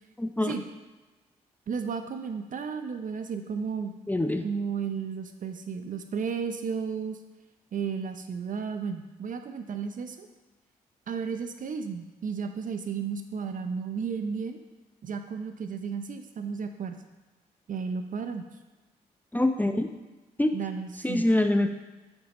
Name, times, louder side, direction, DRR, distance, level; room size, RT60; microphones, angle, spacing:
voice 1, 0.2-0.5 4.1-4.5 19.3-19.9 20.4-20.5 21.0-21.7, left 1 dB, 10° left, 6 dB, 0.5 m, -24 dB
voice 2, 1.7-3.9 4.4-7.2 7.7-10.3 11.1-14.6 15.0-17.0 17.7-18.4 20.5-21.2, right 6 dB, 50° right, 7 dB, 0.6 m, -33 dB
6.8 x 5.3 x 3.0 m, 1.2 s
hypercardioid pair, 45°, 17 cm